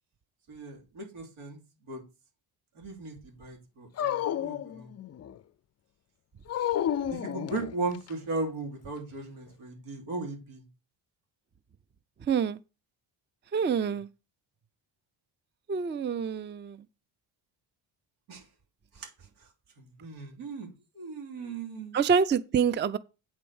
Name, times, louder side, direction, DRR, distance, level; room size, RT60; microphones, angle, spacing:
voice 1, 0.5-1.6 1.9-2.0 2.7-4.9 7.1-10.6 18.3-18.4 18.9-19.1 19.8-20.7 20.9-22.0, right 3 dB, 85° right, 3.3 m, -37 dB
Dog, 4.0-5.4 6.5-8.1, left 10 dB, 35° left, 0.4 m, -31 dB
voice 2, 12.3-12.6 13.5-14.1 15.7-16.8 21.9-23.0, right 6 dB, 25° right, 0.4 m, -26 dB
8.6 x 4.4 x 7.0 m
cardioid pair, 100°, 48 cm